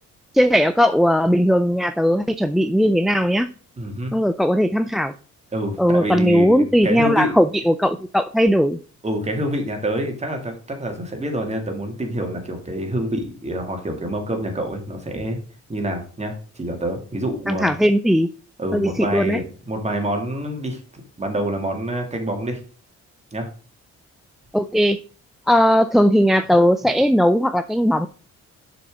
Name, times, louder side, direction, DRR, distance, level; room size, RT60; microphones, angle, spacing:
voice 1, 0.3-3.5 4.1-5.1 5.8-8.8 17.5-18.3 18.7-19.4 24.5-25.0 25.5-28.1, equal, ahead, 12 dB, 0.3 m, -18 dB
voice 2, 3.8-4.1 5.5-7.4 9.0-15.4 15.7-17.7 18.6-20.8 21.2-22.6 23.3-23.5, right 1 dB, 20° right, 3 dB, 2.5 m, -26 dB
6.8 x 6.3 x 3.8 m, 0.40 s
cardioid pair, 90°, 30 cm